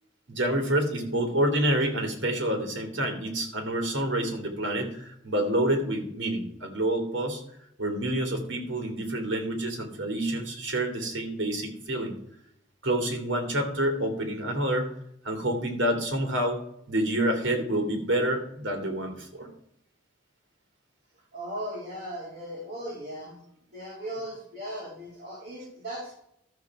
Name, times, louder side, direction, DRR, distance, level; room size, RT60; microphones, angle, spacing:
voice 1, 0.3-7.4 7.8-12.2 12.8-14.9 15.2-16.6 16.9-19.5, right 1 dB, 80° right, 4 dB, 2.7 m, -28 dB
voice 2, 21.3-23.4 23.7-26.1, equal, 55° right, -5 dB, 3.6 m, -37 dB
13.0 x 6.9 x 4.7 m, 0.74 s
head